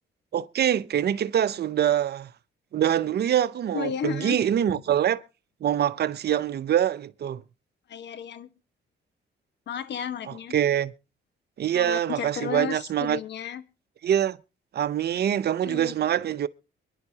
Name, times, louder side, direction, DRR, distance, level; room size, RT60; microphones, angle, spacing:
voice 1, 0.3-2.3 2.7-5.2 5.6-7.4 10.3-10.9 11.6-13.2 14.0-14.4 14.7-16.5, right 10 dB, 55° right, 0.7 m, -24 dB
voice 2, 3.7-4.4 7.9-8.5 9.7-10.6 11.7-13.6 15.6-15.9, left 8 dB, 60° left, 1.1 m, -33 dB
23.5 x 11.0 x 2.8 m
cardioid pair, 90°, 20 cm